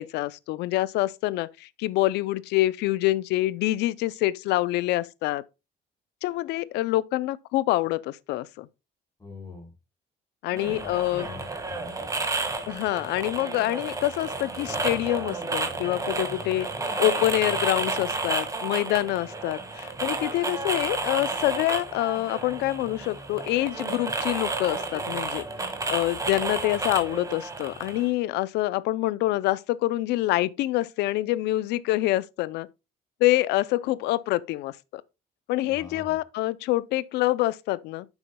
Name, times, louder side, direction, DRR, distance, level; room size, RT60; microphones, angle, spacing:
voice 1, 0.0-5.4 6.2-8.7 10.4-11.3 12.7-16.7 17.0-25.4 25.9-32.7 33.2-35.0 35.5-38.1, left 16 dB, 80° left, 0.5 m, -26 dB
voice 2, 9.2-9.7 10.5-11.9 35.7-36.2, left 3 dB, 20° left, 3.8 m, -43 dB
sound 1, 10.6-28.1, right 3 dB, 20° right, 1.7 m, -31 dB
9.4 x 7.0 x 2.2 m
cardioid pair, 110°, 17 cm